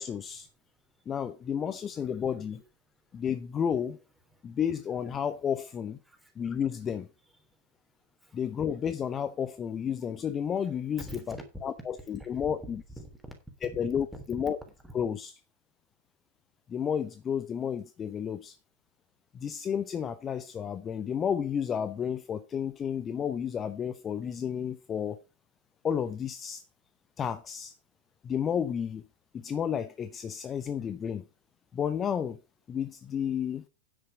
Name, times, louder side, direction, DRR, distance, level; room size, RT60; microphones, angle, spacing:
voice 1, 0.0-0.5 1.1-2.6 3.1-4.0 4.4-6.0 6.4-7.1 8.3-11.4 11.6-12.8 13.6-14.6 14.9-15.3 16.7-18.6 19.3-25.2 25.8-26.6 27.2-27.7 28.2-29.0 29.3-31.2 31.7-32.4 32.7-33.6, left 8 dB, 25° left, 0.7 m, -32 dB
voice 2, 0.6-1.1 1.4-1.6 1.9-2.3 3.1-3.2 4.3-4.5 6.1-6.4 7.5-7.6 8.0-8.4 11.0-11.6 12.2-12.3 12.6-12.7 14.8-14.9, equal, 5° right, 3.4 m, -47 dB
9.8 x 7.8 x 5.1 m
figure-of-eight pair, 90°, 0 cm